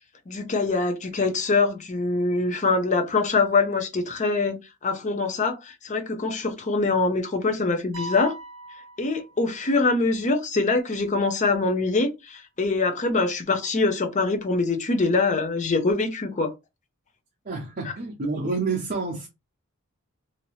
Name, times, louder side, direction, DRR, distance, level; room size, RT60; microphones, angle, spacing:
voice 1, 0.3-8.4 9.0-16.5, left 3 dB, 35° left, 0.7 m, -24 dB
sound 1, 7.9-9.8, right 2 dB, 90° right, 1.0 m, -39 dB
voice 2, 17.4-19.3, right 4 dB, 40° right, 0.8 m, -28 dB
2.9 x 2.7 x 3.0 m
head